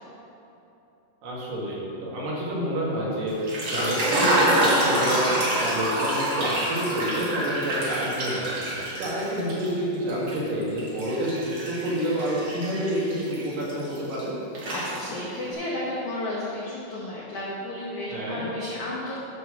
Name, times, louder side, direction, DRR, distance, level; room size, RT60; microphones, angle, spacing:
voice 1, 1.2-5.3 5.6-14.3 18.1-18.5, right 1 dB, 70° right, -6 dB, 3.6 m, -28 dB
sound 1, 3.3-9.7 10.1-14.2 14.5-15.4, right 1 dB, 55° right, 1.4 m, -27 dB
voice 2, 14.7-19.2, left 1 dB, 75° left, -5 dB, 1.8 m, -32 dB
9.7 x 4.3 x 6.9 m, 2.9 s
omnidirectional pair, 5.0 m